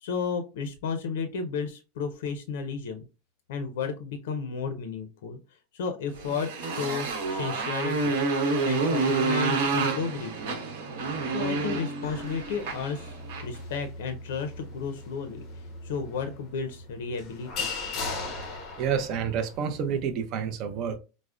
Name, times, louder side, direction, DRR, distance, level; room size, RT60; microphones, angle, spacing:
voice 1, 0.0-3.1 3.5-5.4 5.7-8.2 8.6-10.6 11.3-13.2 13.4-17.7, left 5 dB, 80° left, 0.5 m, -33 dB
Motorcycle, 6.2-13.6, right 4 dB, 70° right, 1.0 m, -28 dB
sound 1, 12.0-19.6, left 3 dB, 30° left, 0.5 m, -39 dB
voice 2, 18.5-21.0, right 7 dB, 35° right, 0.5 m, -29 dB
4.8 x 2.0 x 2.3 m
supercardioid pair, 170°, 0 cm